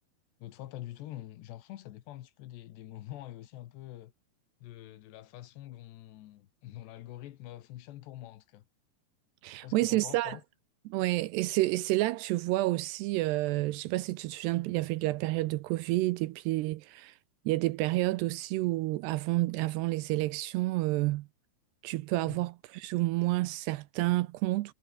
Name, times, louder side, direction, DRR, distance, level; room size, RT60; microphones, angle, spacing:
voice 1, 0.4-4.1 4.6-8.6 9.6-10.4 22.3-22.4, left 14 dB, 75° left, 3.3 m, -45 dB
voice 2, 9.4-10.4 10.9-17.1 17.5-21.3 21.8-24.7, right 18 dB, 80° right, 2.6 m, -29 dB
omnidirectional pair, 5.2 m